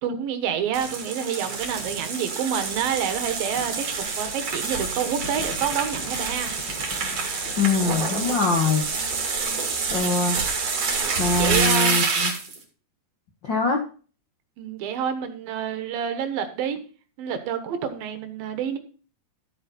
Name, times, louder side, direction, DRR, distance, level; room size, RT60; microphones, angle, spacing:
voice 1, 0.0-6.5 10.9-12.0 14.6-16.8 17.2-18.8, right 8 dB, 70° right, 8 dB, 2.9 m, -28 dB
sound 1, 0.7-12.6, right 4 dB, 45° right, 3.3 m, -27 dB
Thump thud, 3.6-9.1, left 4 dB, 55° left, 1.6 m, -44 dB
voice 2, 7.6-8.9 9.9-10.4 11.2-12.3 13.4-13.8, left 4 dB, 70° left, 2 dB, 1.0 m, -23 dB
13.0 x 7.9 x 4.2 m, 0.38 s
omnidirectional pair, 4.5 m